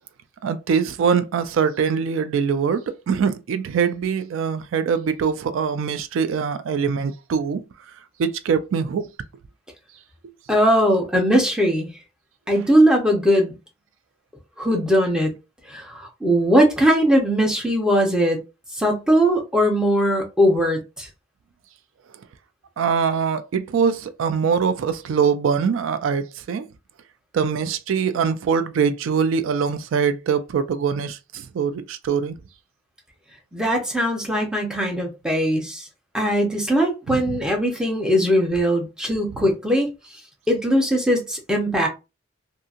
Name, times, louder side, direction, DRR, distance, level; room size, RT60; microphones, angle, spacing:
voice 1, 0.4-7.6 8.2-9.1 22.8-26.6 27.3-32.3 37.1-37.4, right 6 dB, 80° right, 0.3 m, -23 dB
voice 2, 10.5-11.9 12.5-13.5 14.6-15.3 15.7-18.4 18.7-21.1 33.5-35.9 36.1-40.2 40.5-41.9, equal, 5° right, 0.6 m, -20 dB
2.7 x 2.6 x 2.4 m
head